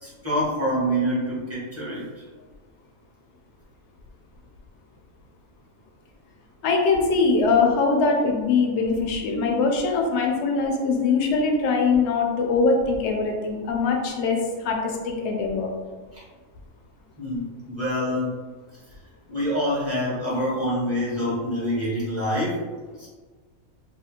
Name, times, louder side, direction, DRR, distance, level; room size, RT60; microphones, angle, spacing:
voice 1, 0.0-2.2 16.1-16.2 17.2-18.4 19.3-22.6 23.0-23.1, equal, 15° right, -8 dB, 0.6 m, -26 dB
voice 2, 6.6-15.7, left 4 dB, 65° left, 1 dB, 0.7 m, -22 dB
2.5 x 2.3 x 2.8 m, 1.4 s
omnidirectional pair, 1.5 m